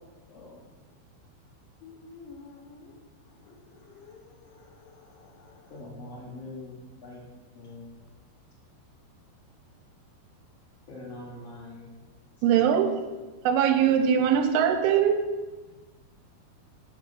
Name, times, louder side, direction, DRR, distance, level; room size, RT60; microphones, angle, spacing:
voice 1, 0.3-0.6 5.7-7.2 7.5-7.9 10.9-11.9 12.5-12.9, left 2 dB, 60° left, 1.6 m, -43 dB
voice 2, 1.8-3.0 3.3-5.7, left 4 dB, 80° left, 3.0 m, -51 dB
voice 3, 12.4-13.0 13.5-15.3, right 8 dB, 80° right, 3.0 m, -22 dB
8.0 x 6.0 x 6.6 m
omnidirectional pair, 5.8 m